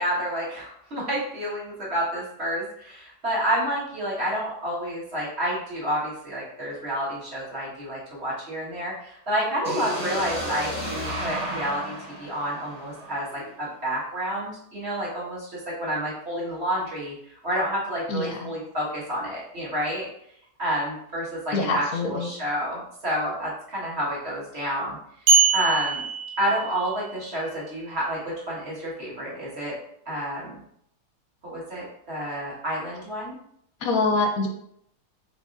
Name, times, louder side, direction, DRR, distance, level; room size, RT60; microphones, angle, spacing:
voice 1, 0.0-20.1 20.6-25.3 25.5-26.0 26.4-29.7 30.1-30.6 31.4-33.4, equal, 40° right, -7 dB, 1.8 m, -29 dB
sound 1, 9.6-13.6, equal, 15° right, 1.3 m, -32 dB
voice 2, 18.1-18.5 21.5-22.3 33.8-34.5, left 3 dB, 70° left, 3 dB, 1.0 m, -25 dB
sound 2, 25.3-27.1, right 6 dB, 80° right, 1.4 m, -22 dB
5.0 x 3.5 x 2.5 m, 0.72 s
omnidirectional pair, 1.7 m